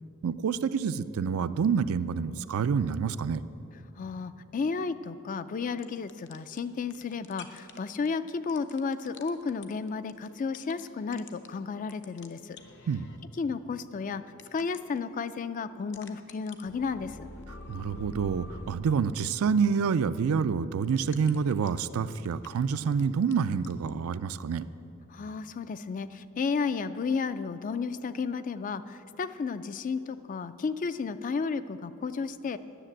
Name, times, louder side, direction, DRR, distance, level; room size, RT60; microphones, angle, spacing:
voice 1, 0.2-3.4 12.9-13.1 17.7-24.7, right 6 dB, 80° right, 14 dB, 0.4 m, -27 dB
voice 2, 4.0-12.6 13.4-14.2 14.5-17.3 25.1-32.6, left 5 dB, 40° left, 13 dB, 0.3 m, -33 dB
sound 1, 5.8-6.6 6.9-7.8 8.1-8.2 8.5-10.8 11.1-11.5 11.9-13.2 14.4-15.0 15.9-18.7 20.8-23.0 23.3-23.9, left 2 dB, 55° left, 0.8 m, -46 dB
10.0 x 6.6 x 8.8 m, 2.8 s
head